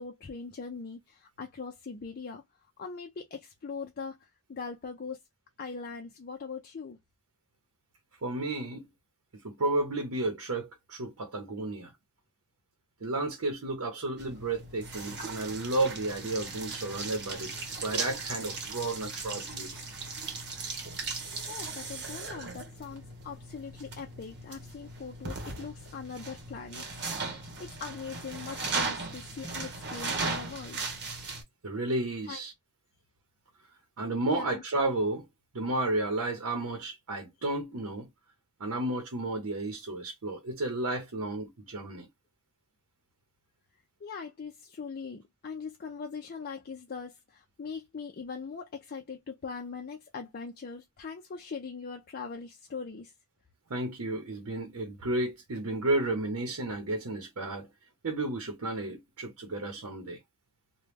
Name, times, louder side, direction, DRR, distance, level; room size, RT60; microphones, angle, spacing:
voice 1, 0.0-2.4 2.8-5.2 5.6-7.0 21.5-26.9 27.3-30.8 32.2-32.4 34.3-34.6 44.0-53.1, left 5 dB, 45° left, 0.5 m, -41 dB
voice 2, 8.2-8.9 9.4-11.9 13.0-19.8 31.6-32.5 34.0-35.3 35.5-38.1 38.6-42.1 53.7-57.7 58.0-60.2, right 2 dB, 80° right, 0.8 m, -32 dB
sound 1, 14.2-31.4, right 3 dB, 50° right, 1.1 m, -37 dB
3.0 x 2.2 x 3.3 m
head